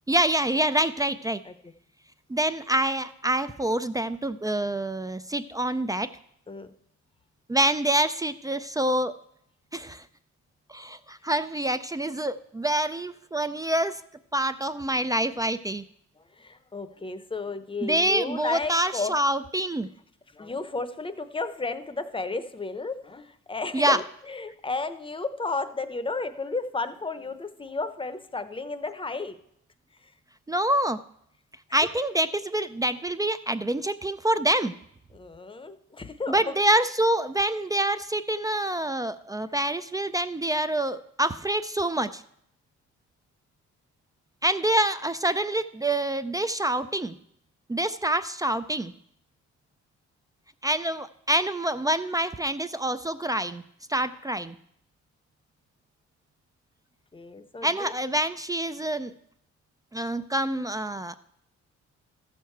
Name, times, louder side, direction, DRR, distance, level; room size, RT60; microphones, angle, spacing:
voice 1, 0.1-1.4 2.3-6.1 7.5-9.1 9.7-10.0 10.7-14.0 14.3-15.8 17.8-19.9 23.7-24.0 30.5-31.0 31.7-34.7 36.3-42.2 44.4-47.1 47.7-48.9 50.6-53.6 53.9-54.6 57.6-59.1 59.9-61.2, right 1 dB, 10° right, 11 dB, 0.3 m, -26 dB
voice 2, 16.4-19.1 20.3-29.4 35.1-36.5 57.1-57.9, left 3 dB, 15° left, 11 dB, 0.7 m, -33 dB
14.0 x 6.6 x 4.5 m, 0.72 s
cardioid pair, 90°, 30 cm